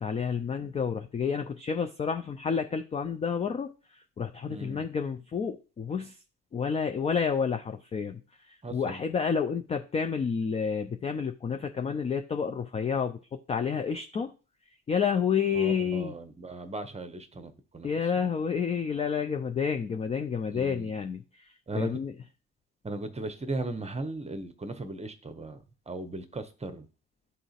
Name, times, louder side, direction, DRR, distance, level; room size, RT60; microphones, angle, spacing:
voice 1, 0.0-3.7 4.2-6.1 6.5-8.2 8.7-13.2 13.5-14.3 14.9-16.1 17.8-21.2 21.7-22.1, left 6 dB, 15° left, 0.3 m, -29 dB
voice 2, 4.5-4.8 8.6-9.0 15.5-17.9 18.1-18.3 20.5-20.9 21.7-22.0 22.8-26.9, right 2 dB, 15° right, 0.8 m, -37 dB
11.0 x 3.8 x 2.4 m
hypercardioid pair, 50°, 43 cm